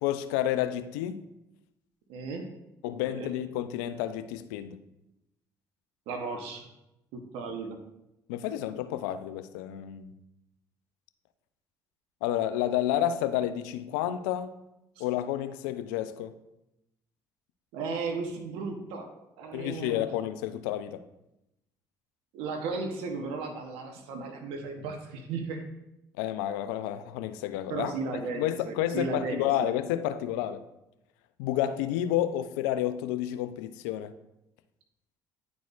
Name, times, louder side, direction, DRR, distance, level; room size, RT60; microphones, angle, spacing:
voice 1, 0.0-1.2 2.8-4.8 8.3-10.1 12.2-14.5 15.0-16.3 19.5-21.0 26.2-30.6 31.4-34.1, left 12 dB, 85° left, 0.4 m, -30 dB
voice 2, 2.1-2.5 3.1-3.3 6.1-6.7 7.1-7.8 8.5-8.6 15.0-15.1 17.7-20.0 22.3-25.6 27.7-29.7, right 4 dB, 75° right, 0.8 m, -35 dB
10.5 x 4.1 x 2.4 m
hypercardioid pair, 60°, 10 cm